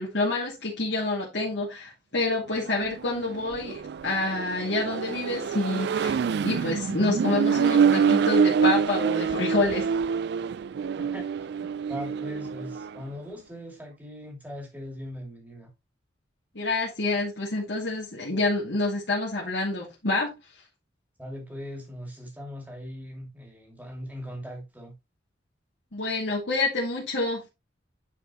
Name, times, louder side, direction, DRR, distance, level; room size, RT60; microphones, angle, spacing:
voice 1, 0.0-6.2 6.4-9.9 16.5-20.3 25.9-27.4, left 2 dB, 70° left, 2.4 m, -27 dB
Accelerating revving vroom, 2.6-13.0, right 6 dB, 60° right, 0.3 m, -26 dB
voice 2, 11.0-11.3 11.6-15.7 21.2-25.0, equal, 10° right, 2.4 m, -40 dB
10.0 x 4.7 x 3.0 m
head